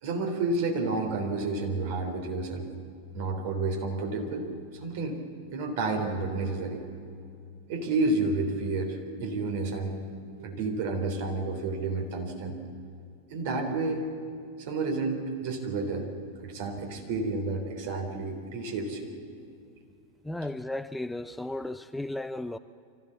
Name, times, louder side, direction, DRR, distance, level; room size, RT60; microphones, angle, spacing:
voice 1, 0.0-2.7 3.1-5.2 5.5-6.8 7.7-9.9 10.4-12.6 13.3-14.0 14.6-16.1 16.4-19.1, right 3 dB, 50° right, 3 dB, 3.4 m, -30 dB
voice 2, 20.2-22.6, left 1 dB, 5° left, 12 dB, 0.4 m, -34 dB
24.5 x 15.0 x 7.3 m, 2.5 s
figure-of-eight pair, 90°, 0 cm